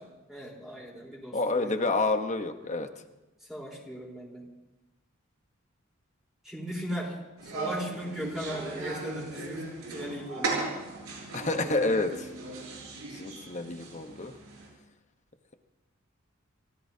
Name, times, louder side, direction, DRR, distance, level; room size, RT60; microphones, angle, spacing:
voice 1, 0.3-1.9 3.4-4.4 6.4-7.2 7.4-10.6, equal, ahead, -4 dB, 4.1 m, -38 dB
voice 2, 1.3-2.9 11.3-12.3 13.1-14.3, left 3 dB, 35° left, 6 dB, 1.2 m, -29 dB
sound 1, 7.4-14.7, right 3 dB, 90° right, 7.2 m, -37 dB
29.5 x 17.0 x 2.9 m, 1.1 s
head